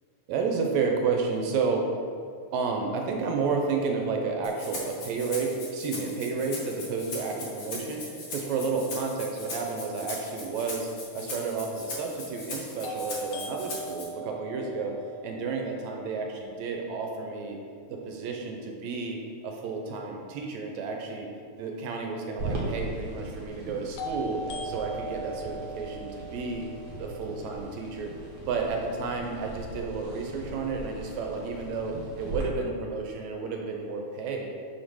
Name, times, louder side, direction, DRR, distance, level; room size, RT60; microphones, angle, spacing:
voice 1, 0.3-1.9 2.5-8.0 8.3-15.0 15.2-17.6 17.9-19.2 19.4-21.3 21.6-26.7 27.0-28.1 28.4-34.5, right 4 dB, 80° right, 2 dB, 2.0 m, -31 dB
Rattle (instrument), 4.4-14.0, left 2 dB, 50° left, 1.7 m, -40 dB
sound 1, 12.8-16.7 24.0-28.0, right 1 dB, 85° left, 2.1 m, -40 dB
sound 2, 22.4-32.4, right 2 dB, 55° right, 1.9 m, -39 dB
5.5 x 4.3 x 6.2 m, 2.3 s
omnidirectional pair, 3.3 m